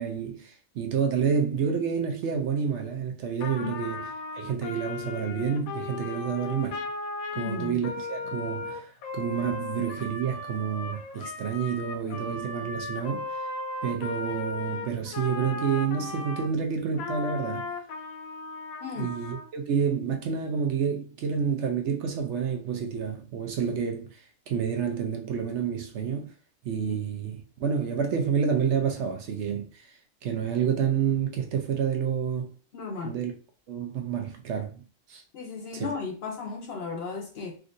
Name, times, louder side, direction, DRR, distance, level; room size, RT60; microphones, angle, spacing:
voice 1, 0.0-4.1 4.3-6.8 7.3-13.4 13.8-17.7 19.0-24.2 24.5-26.3 26.6-29.9 30.2-32.5 33.0-33.3 33.7-34.8 35.1-35.2 35.7-35.9, right 7 dB, 65° right, 0.8 m, -29 dB
Trumpet, 3.4-16.5 16.9-19.5, left 3 dB, 90° left, 1.1 m, -36 dB
voice 2, 7.3-7.8 18.8-19.1 26.9-27.0 32.7-33.2 35.3-37.6, left 4 dB, 60° left, 0.7 m, -35 dB
3.5 x 2.5 x 2.5 m
omnidirectional pair, 1.4 m